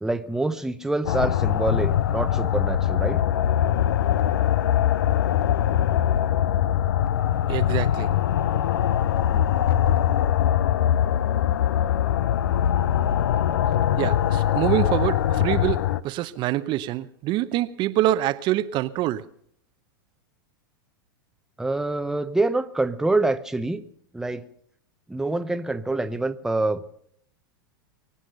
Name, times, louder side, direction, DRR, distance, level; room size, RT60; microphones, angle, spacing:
voice 1, 0.0-3.2 9.3-9.5 21.6-23.8 24.1-24.4 25.1-26.8, right 2 dB, 5° right, 9 dB, 0.8 m, -26 dB
sound 1, 1.1-16.0, left 10 dB, 75° left, 0.7 m, -22 dB
voice 2, 7.5-8.1 13.9-19.3, right 14 dB, 40° right, 12 dB, 0.8 m, -25 dB
23.5 x 8.6 x 6.7 m, 0.68 s
hypercardioid pair, 105°, 12 cm